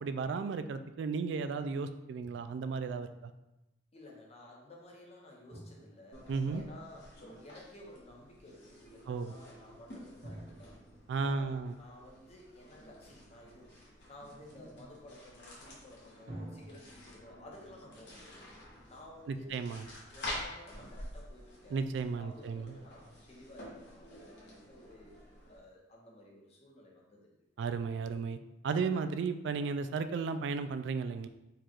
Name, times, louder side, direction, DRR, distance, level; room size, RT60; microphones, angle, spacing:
voice 1, 0.0-3.3 6.3-6.6 9.1-9.3 11.1-11.8 19.3-19.8 21.7-22.7 27.6-28.4 28.6-31.3, right 5 dB, 75° right, 10 dB, 0.3 m, -34 dB
voice 2, 3.9-10.8 11.2-13.8 14.1-18.5 18.9-19.6 20.1-21.8 22.2-25.1 25.5-27.4, left 1 dB, 35° left, -1 dB, 0.9 m, -54 dB
Drum, 5.5-7.3 10.2-12.7 16.3-19.4, right 1 dB, 50° right, 1.5 m, -52 dB
sound 1, 6.1-25.6, left 1 dB, 70° left, 1.4 m, -49 dB
4.8 x 2.4 x 4.4 m, 0.94 s
head